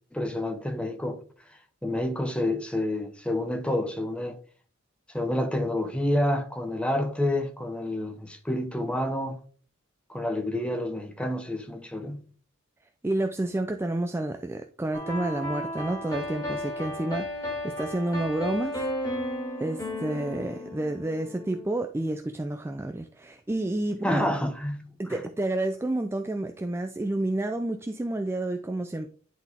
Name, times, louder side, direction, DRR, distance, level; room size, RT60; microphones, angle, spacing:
voice 1, 0.1-4.4 5.1-9.4 10.1-12.3 24.0-25.2, left 1 dB, 5° left, 0.8 m, -29 dB
voice 2, 13.0-18.8 19.6-24.3 25.0-29.1, right 1 dB, 10° right, 0.4 m, -30 dB
sound 1, 14.9-21.7, left 1 dB, 20° left, 2.3 m, -34 dB
10.5 x 4.0 x 3.5 m
head